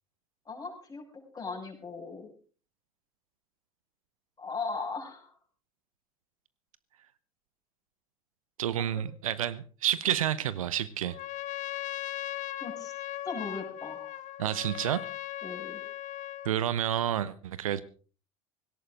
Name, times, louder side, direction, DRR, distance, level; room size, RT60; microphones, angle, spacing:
voice 1, 0.5-1.0 1.3-2.3 4.4-5.3 8.8-8.9 12.6-12.9 13.2-14.1 15.4-15.8, left 4 dB, 20° left, 1 dB, 6.5 m, -38 dB
voice 2, 8.6-11.2 14.4-15.1 16.4-17.8, right 11 dB, 70° right, 17 dB, 0.9 m, -29 dB
Trumpet, 11.1-16.6, left 14 dB, 45° left, 1.0 m, -38 dB
18.0 x 17.0 x 3.8 m, 0.39 s
figure-of-eight pair, 70°, 18 cm